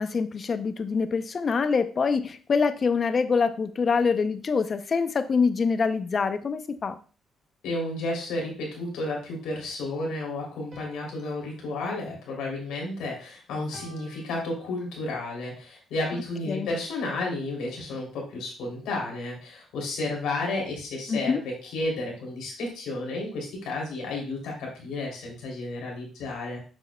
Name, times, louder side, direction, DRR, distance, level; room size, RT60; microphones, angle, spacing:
voice 1, 0.0-7.0 16.5-16.7 21.1-21.4, left 5 dB, 45° left, 11 dB, 0.5 m, -25 dB
voice 2, 7.6-26.6, left 2 dB, 85° left, -1 dB, 2.9 m, -32 dB
sound 1, 10.7-13.2 13.7-15.3, right 1 dB, 30° right, 1.5 m, -53 dB
7.4 x 6.1 x 2.2 m, 0.37 s
cardioid pair, 90°, 0 cm